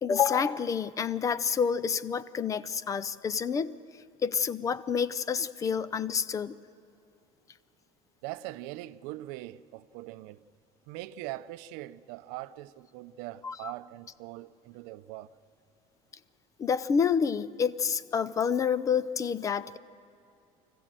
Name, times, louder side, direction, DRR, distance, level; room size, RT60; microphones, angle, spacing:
voice 1, 0.0-3.8 4.2-6.6 13.4-13.7 16.6-19.8, left 6 dB, 20° left, 0.4 m, -28 dB
voice 2, 8.2-10.4 10.9-15.4, right 16 dB, 85° right, 0.6 m, -42 dB
25.0 x 15.0 x 7.5 m
cardioid pair, 160°, 15 cm